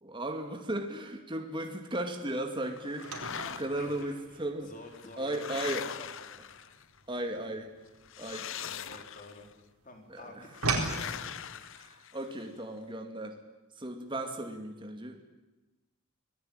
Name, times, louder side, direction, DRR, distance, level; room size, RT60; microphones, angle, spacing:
voice 1, 0.0-3.1 3.5-4.7 5.2-6.0 7.1-7.7 8.2-8.5 10.1-10.4 11.7-13.4 13.8-15.2, right 1 dB, 20° right, 4 dB, 2.3 m, -36 dB
sound 1, 2.8-4.0 4.8-7.0 8.1-9.5 10.5-12.4, left 9 dB, 60° left, 0.8 m, -41 dB
sound 2, 3.0-9.5 9.8-11.0, right 3 dB, 85° right, 4.4 m, -38 dB
voice 2, 3.7-6.4 8.6-9.5 9.8-11.5, left 2 dB, 35° left, 3 dB, 4.4 m, -50 dB
25.5 x 19.0 x 9.0 m, 1.1 s
head